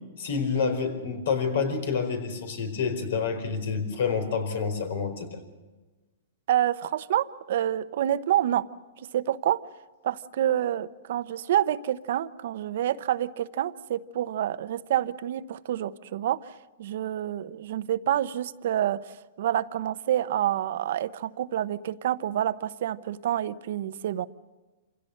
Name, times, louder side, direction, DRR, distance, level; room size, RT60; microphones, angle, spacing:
voice 1, 0.2-5.4, left 5 dB, 70° left, 7 dB, 4.7 m, -28 dB
voice 2, 6.5-8.7 9.1-9.6 10.0-16.5 16.8-24.3, right 11 dB, 65° right, 14 dB, 0.8 m, -28 dB
27.0 x 17.0 x 6.6 m, 1.2 s
hypercardioid pair, 140°, 0 cm